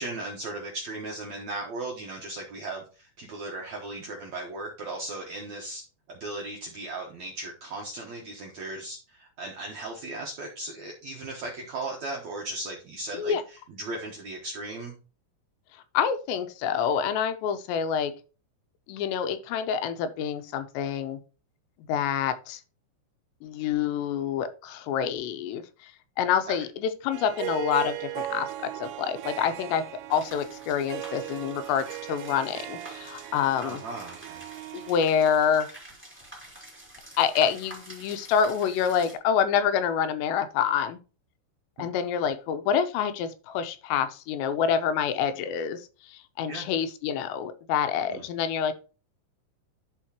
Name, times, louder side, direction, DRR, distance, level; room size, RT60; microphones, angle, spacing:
voice 1, 0.0-5.8 6.1-13.4 13.7-15.0 26.5-26.6 33.6-34.4 41.8-41.9 46.5-46.7 48.1-48.2, right 2 dB, 70° right, -1 dB, 1.7 m, -37 dB
voice 2, 15.9-18.1 18.9-21.2 21.9-22.6 23.4-25.9 26.2-28.5 28.8-29.8 30.1-33.8 34.7-35.7 37.2-41.0 41.8-48.8, left 8 dB, 85° left, 10 dB, 2.9 m, -27 dB
Harp, 27.1-35.1, right 16 dB, 90° right, 2.9 m, -38 dB
sound 1, 30.1-39.1, right 1 dB, 5° right, 1.2 m, -48 dB
12.0 x 4.6 x 3.0 m, 0.34 s
omnidirectional pair, 5.1 m